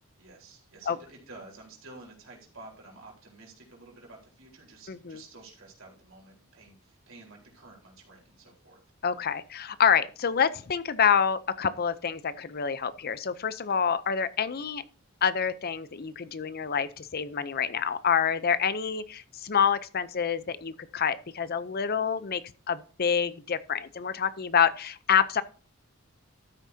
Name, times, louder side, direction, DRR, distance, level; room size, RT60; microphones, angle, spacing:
voice 1, 0.2-8.8, right 2 dB, 65° right, -1 dB, 4.3 m, -50 dB
voice 2, 4.9-5.2 9.0-14.8 15.2-25.4, left 7 dB, 45° left, 15 dB, 0.6 m, -27 dB
13.5 x 9.3 x 2.8 m, 0.40 s
head